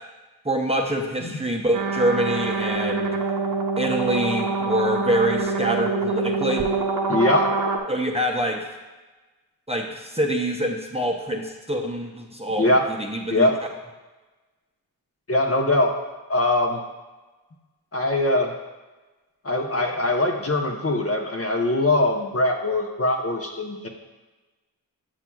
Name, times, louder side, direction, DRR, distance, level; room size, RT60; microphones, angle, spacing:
voice 1, 0.4-3.1 3.8-6.7 7.9-8.7 9.7-13.5, right 1 dB, 15° right, 0 dB, 0.7 m, -25 dB
sound 1, 1.7-7.8, right 3 dB, 50° right, 0.8 m, -25 dB
voice 2, 7.1-7.5 12.6-12.9 13.3-13.6 15.3-15.9 16.3-16.8 17.9-18.5 19.4-23.9, left 1 dB, 35° left, 2 dB, 0.9 m, -22 dB
7.3 x 5.9 x 2.3 m, 1.2 s
cardioid pair, 40°, 40 cm